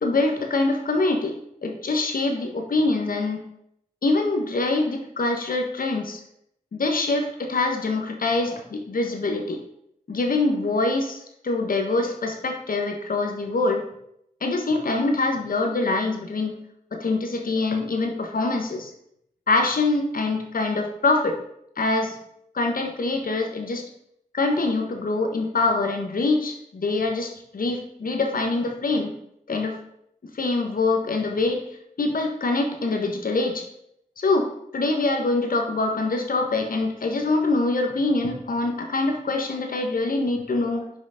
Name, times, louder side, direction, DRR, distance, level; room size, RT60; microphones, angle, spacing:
voice 1, 0.0-1.3 1.6-3.4 4.0-6.2 6.7-9.6 10.1-13.8 14.4-16.5 16.9-18.9 19.5-21.4 21.8-22.2 22.5-23.8 24.3-29.1 29.5-29.8 30.3-31.6 32.0-33.6 34.2-40.9, left 3 dB, 65° left, 4 dB, 1.5 m, -24 dB
6.1 x 5.1 x 6.5 m, 0.76 s
cardioid pair, 40°, 16 cm